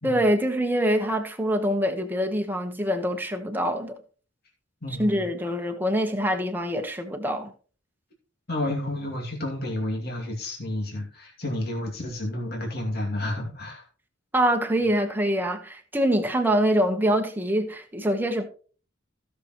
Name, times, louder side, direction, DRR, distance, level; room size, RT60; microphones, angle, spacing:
voice 1, 0.0-4.0 5.0-7.5 14.3-18.5, equal, 10° right, 1.2 m, -24 dB
voice 2, 4.8-5.2 8.5-13.8, left 1 dB, 55° left, 2.5 m, -31 dB
16.0 x 6.7 x 3.1 m
head